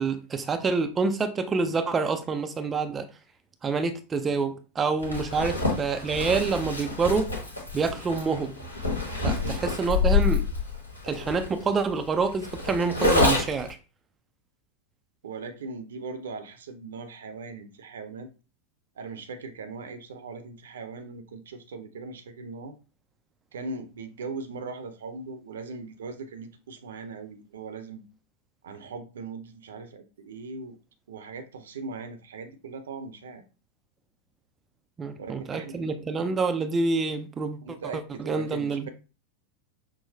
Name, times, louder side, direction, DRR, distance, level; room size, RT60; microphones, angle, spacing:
voice 1, 0.0-3.1 3.6-7.3 7.7-8.5 9.2-10.5 11.0-13.8 35.0-38.9, right 4 dB, 20° right, 0.4 m, -27 dB
Zipper (clothing), 5.0-13.7, left 3 dB, 85° left, 1.2 m, -27 dB
voice 2, 9.3-10.0 15.2-18.3 19.0-22.7 23.5-28.0 28.6-30.8 31.1-33.4 35.1-36.2 37.6-38.9, right 4 dB, 65° right, 0.6 m, -39 dB
6.0 x 2.0 x 2.7 m
figure-of-eight pair, 90°, 0 cm